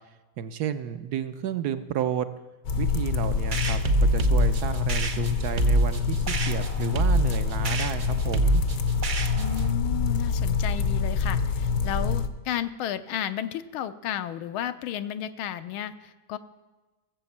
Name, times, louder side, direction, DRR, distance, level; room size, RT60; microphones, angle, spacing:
voice 1, 0.4-2.3 2.8-8.6, right 9 dB, 65° right, 11 dB, 1.0 m, -31 dB
sound 1, 2.6-12.3, left 5 dB, 60° left, 0.9 m, -26 dB
sound 2, 3.5-9.7, right 1 dB, 85° right, 0.4 m, -25 dB
voice 2, 9.4-16.4, left 10 dB, 80° left, 11 dB, 1.6 m, -33 dB
17.5 x 7.7 x 7.3 m, 1.2 s
omnidirectional pair, 2.2 m